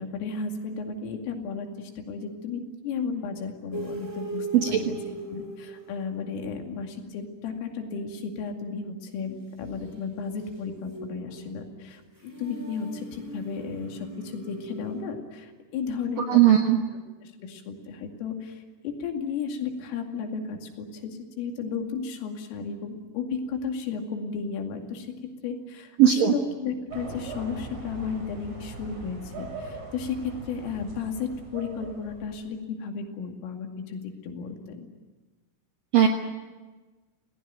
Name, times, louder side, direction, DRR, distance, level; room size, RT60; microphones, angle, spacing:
voice 1, 0.0-16.7 17.2-34.9, left 5 dB, 75° left, 3 dB, 5.0 m, -34 dB
sound 1, 3.7-6.4 9.8-15.0, right 2 dB, 5° right, 3.3 m, -40 dB
voice 2, 16.3-16.8 26.0-26.3 35.9-36.1, right 11 dB, 70° right, 3 dB, 2.2 m, -17 dB
sound 2, 26.9-32.5, right 3 dB, 35° right, 6.5 m, -40 dB
28.0 x 18.5 x 9.3 m, 1.3 s
omnidirectional pair, 6.0 m